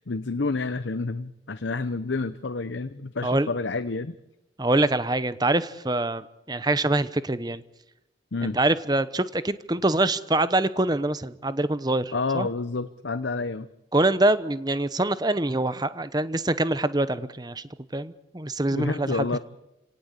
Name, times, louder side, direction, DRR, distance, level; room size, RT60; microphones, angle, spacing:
voice 1, 0.0-4.2 8.3-8.6 12.1-13.7 18.7-19.4, left 3 dB, 70° left, 12 dB, 0.8 m, -29 dB
voice 2, 4.6-7.6 8.4-12.5 13.9-17.6 17.9-19.4, right 2 dB, 20° right, 14 dB, 0.9 m, -25 dB
29.5 x 18.0 x 8.3 m, 0.92 s
head